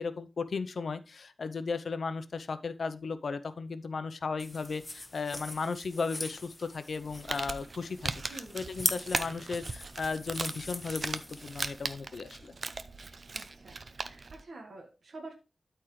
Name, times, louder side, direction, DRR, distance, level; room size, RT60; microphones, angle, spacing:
voice 1, 0.0-8.1 8.5-12.5, left 4 dB, 80° left, 11 dB, 0.6 m, -35 dB
sound 1, 4.4-11.9, left 1 dB, 20° left, 1.3 m, -40 dB
Crumpling crinkling, 7.0-14.4, right 3 dB, 55° right, 0.6 m, -39 dB
voice 2, 8.3-8.6 13.3-15.3, right 2 dB, 75° right, 1 dB, 1.5 m, -48 dB
12.5 x 4.5 x 3.2 m, 0.30 s
wide cardioid pair, 115°, 0 cm